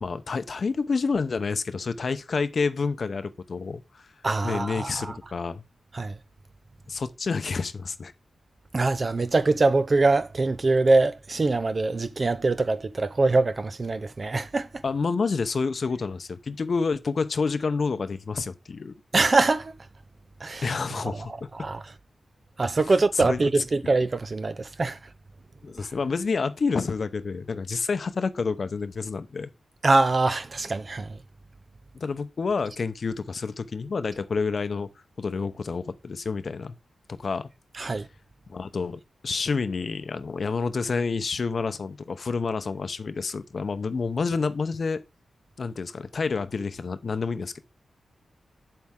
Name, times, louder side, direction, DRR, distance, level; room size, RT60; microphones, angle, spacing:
voice 1, 0.0-4.1 4.4-5.6 6.9-8.1 14.8-18.9 20.6-21.5 22.8-23.5 23.8-23.9 25.6-29.5 31.9-34.9 35.2-36.7 37.1-37.5 38.5-45.0 45.6-47.6, left 4 dB, 60° left, 0.7 m, -29 dB
voice 2, 4.2-5.1 5.9-6.1 8.7-14.7 19.1-19.7 20.4-20.6 21.6-21.8 22.6-25.0 29.8-31.1 37.8-38.1, right 3 dB, 45° right, 0.6 m, -23 dB
7.6 x 7.4 x 3.6 m
cardioid pair, 60°, 0 cm